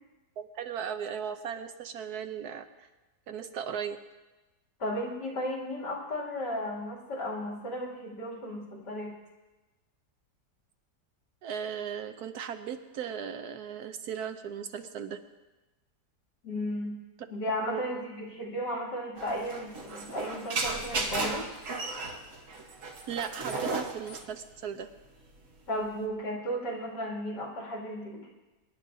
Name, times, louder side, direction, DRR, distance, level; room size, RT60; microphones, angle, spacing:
voice 1, 0.4-2.6 3.3-4.0 11.4-15.2 17.6-17.9 23.1-24.9, right 8 dB, 70° right, 8 dB, 1.1 m, -37 dB
voice 2, 4.8-9.1 16.4-17.0 17.3-21.5 25.7-28.3, equal, 75° left, -2 dB, 3.1 m, -34 dB
sound 1, 19.2-26.0, right 3 dB, 50° right, 1.5 m, -35 dB
24.0 x 10.5 x 2.7 m, 1.1 s
omnidirectional pair, 1.8 m